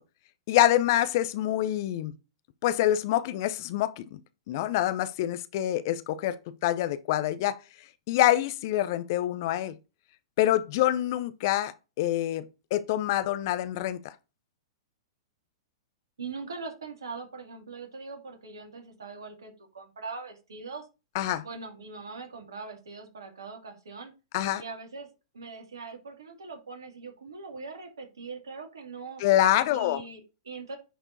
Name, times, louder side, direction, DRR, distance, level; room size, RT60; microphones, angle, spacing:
voice 1, 0.5-2.1 2.6-4.2 4.5-6.4 6.6-7.6 8.1-9.7 10.4-14.1 21.1-21.4 24.3-24.6 29.2-30.0, left 13 dB, 50° left, 0.6 m, -26 dB
voice 2, 16.2-20.9 21.4-24.1 24.6-25.1 25.3-29.2 29.7-30.8, right 4 dB, 70° right, 2.3 m, -41 dB
10.0 x 4.4 x 2.7 m
figure-of-eight pair, 105°, 2 cm